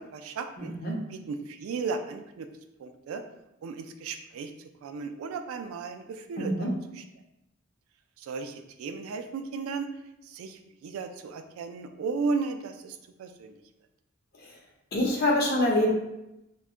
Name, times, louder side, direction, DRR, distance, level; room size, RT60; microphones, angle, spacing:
voice 1, 0.0-0.7 1.1-2.5 2.8-3.2 3.6-4.5 4.8-6.7 7.0-7.1 8.2-9.9 10.3-13.5, right 4 dB, 85° right, 9 dB, 0.3 m, -35 dB
voice 2, 0.6-1.0 6.4-6.7 14.3-14.5 14.9-16.0, left 1 dB, 50° left, -1 dB, 0.6 m, -26 dB
2.2 x 2.1 x 3.6 m, 0.89 s
head